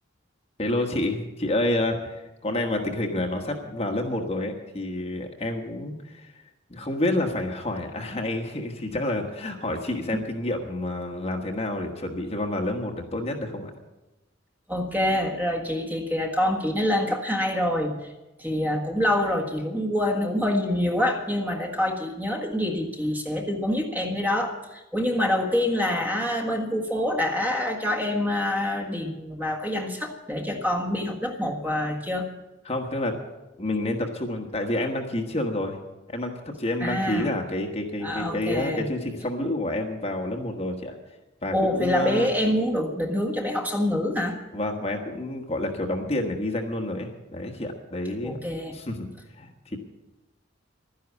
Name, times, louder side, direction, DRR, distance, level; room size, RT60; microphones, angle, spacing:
voice 1, 0.6-6.3 6.7-13.7 32.6-33.2 33.6-35.8 36.1-41.0 41.4-42.3 44.5-48.4 48.7-49.1 49.4-49.8, left 1 dB, 30° left, 3 dB, 1.3 m, -29 dB
voice 2, 14.7-18.1 18.4-32.2 36.8-37.3 38.0-38.9 41.5-44.4 48.2-48.7, left 1 dB, 10° right, 2 dB, 1.6 m, -26 dB
12.0 x 10.5 x 8.2 m, 1.0 s
head